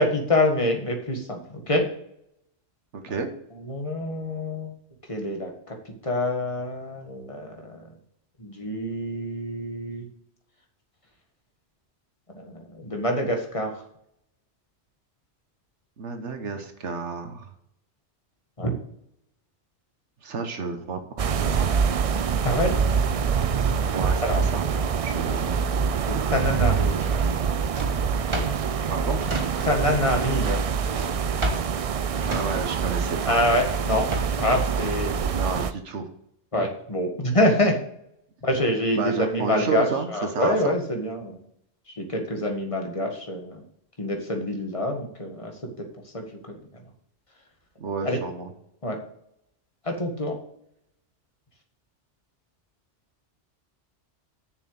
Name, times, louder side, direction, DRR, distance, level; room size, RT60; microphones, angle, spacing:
voice 1, 0.0-1.9 3.1-3.2 3.6-4.7 5.1-5.8 6.0-7.9 8.4-10.1 12.3-13.8 18.6-18.7 22.4-22.8 24.2-24.4 26.1-27.1 29.6-30.6 33.3-34.1 34.4-35.3 36.5-37.8 38.4-41.4 41.9-43.6 44.0-45.9 46.1-46.6 48.0-48.2 48.8-49.0 49.8-50.4, left 1 dB, 30° left, 2 dB, 1.7 m, -26 dB
voice 2, 2.9-3.3 16.0-17.5 20.2-21.9 23.9-25.5 28.9-29.2 32.3-33.4 35.3-36.1 39.0-40.7 47.8-48.5, right 4 dB, 85° right, 6 dB, 1.4 m, -31 dB
sound 1, 21.2-35.7, right 6 dB, 55° right, 0.4 m, -25 dB
Drawer open or close, 26.9-30.0 30.3-34.5, equal, 25° right, 1.2 m, -34 dB
7.2 x 6.6 x 8.0 m, 0.74 s
omnidirectional pair, 1.2 m